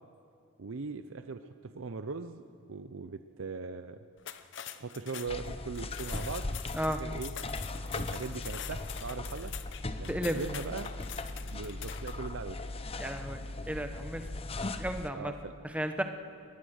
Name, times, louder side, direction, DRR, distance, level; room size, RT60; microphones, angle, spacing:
voice 1, 0.6-4.0 4.7-6.5 6.8-7.3 7.9-9.5 10.0-10.9 11.5-12.7 15.1-15.5, right 4 dB, 65° right, 10 dB, 0.6 m, -40 dB
sound 1, 4.2-12.3, left 10 dB, 55° left, 0.8 m, -45 dB
sound 2, 5.3-15.1, left 2 dB, 25° left, 0.7 m, -38 dB
voice 2, 10.1-10.4 13.0-14.3 14.8-15.3 15.6-16.0, equal, 5° right, 6 dB, 1.0 m, -34 dB
23.0 x 19.0 x 6.5 m, 2.4 s
head